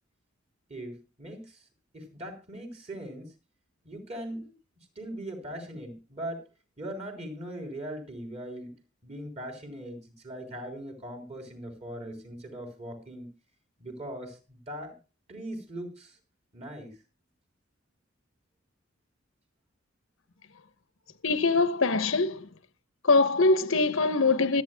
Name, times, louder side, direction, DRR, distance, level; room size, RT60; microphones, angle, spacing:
voice 1, 0.7-1.6 1.9-3.3 3.8-4.5 5.0-6.4 6.8-8.7 9.0-13.3 13.8-15.0 15.3-16.2 16.5-16.9, right 1 dB, 35° right, 4.0 m, -40 dB
voice 2, 21.2-22.5 23.0-24.6, left 3 dB, 85° left, 1.1 m, -23 dB
25.0 x 9.0 x 2.3 m
head